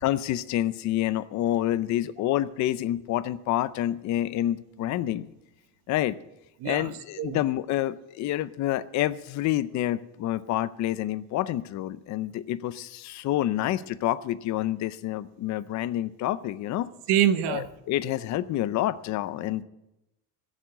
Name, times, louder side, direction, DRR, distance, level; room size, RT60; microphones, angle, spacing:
voice 1, 0.0-5.3 5.9-6.2 6.6-16.9 17.5-19.6, left 13 dB, 45° left, 14 dB, 0.6 m, -28 dB
voice 2, 17.1-17.7, right 10 dB, 90° right, 12 dB, 1.1 m, -24 dB
14.0 x 7.4 x 9.0 m, 0.88 s
cardioid pair, 175°, 39 cm